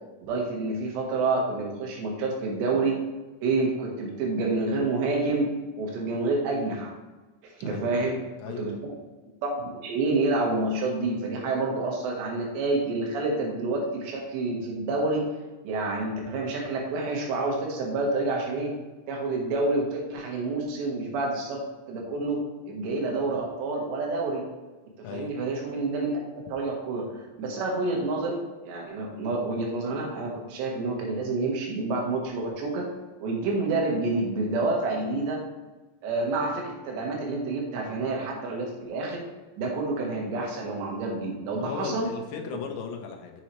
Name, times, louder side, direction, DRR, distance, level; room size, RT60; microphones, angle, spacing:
voice 1, 0.2-3.0 3.4-6.9 7.6-8.2 8.6-8.9 9.4-15.2 15.7-18.7 19.1-22.4 22.7-24.4 25.1-27.1 27.4-32.9 33.2-35.4 36.0-39.2 39.6-42.1, right 3 dB, 80° right, 0 dB, 3.6 m, -28 dB
voice 2, 7.6-8.8 25.0-25.3 41.6-43.4, left 6 dB, 85° left, 3 dB, 3.1 m, -37 dB
7.3 x 7.2 x 3.1 m, 1.2 s
omnidirectional pair, 4.9 m